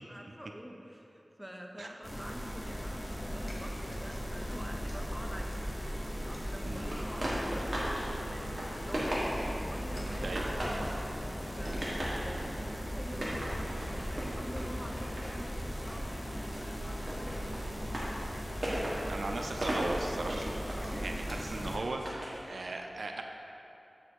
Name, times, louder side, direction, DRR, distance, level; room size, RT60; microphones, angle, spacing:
voice 1, 0.1-5.6 6.1-10.4 11.5-17.9 20.8-21.1, equal, 5° right, 1 dB, 0.6 m, -47 dB
sound 1, 2.0-21.8, equal, 25° left, 1.0 m, -38 dB
sound 2, 3.1-21.9, equal, 85° left, 0.9 m, -53 dB
sound 3, 6.9-8.0 8.4-9.6 10.1-11.0 11.4-12.2 13.1-16.1 16.4-22.4, right 1 dB, 45° right, 1.5 m, -38 dB
voice 2, 18.7-20.5 21.0-22.1 22.4-23.2, right 2 dB, 85° right, 3 dB, 0.4 m, -38 dB
7.5 x 4.3 x 4.6 m, 2.9 s
wide cardioid pair, 70°, 0 cm